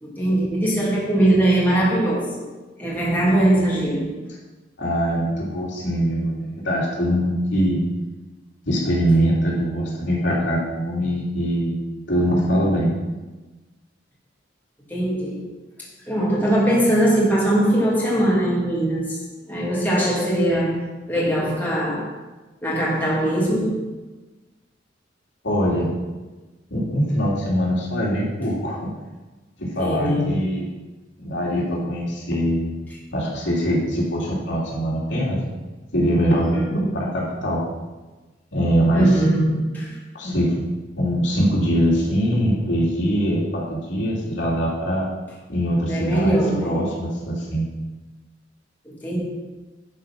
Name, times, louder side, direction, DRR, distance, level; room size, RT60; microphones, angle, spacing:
voice 1, 0.0-2.5 2.8-4.1 14.9-15.4 16.1-19.2 19.4-22.1 22.6-23.8 29.8-30.3 36.4-36.9 38.9-39.9 45.9-46.8 48.8-49.2, right 1 dB, 10° left, -7 dB, 2.6 m, -21 dB
voice 2, 4.8-7.8 8.6-11.8 12.1-12.9 25.4-25.9 26.7-28.9 29.6-30.7 31.2-32.8 33.1-35.4 35.9-36.6 36.9-37.6 38.5-39.2 40.1-40.6 41.0-45.1 45.5-47.7, equal, 75° left, -5 dB, 2.9 m, -22 dB
11.0 x 4.9 x 6.0 m, 1.2 s
head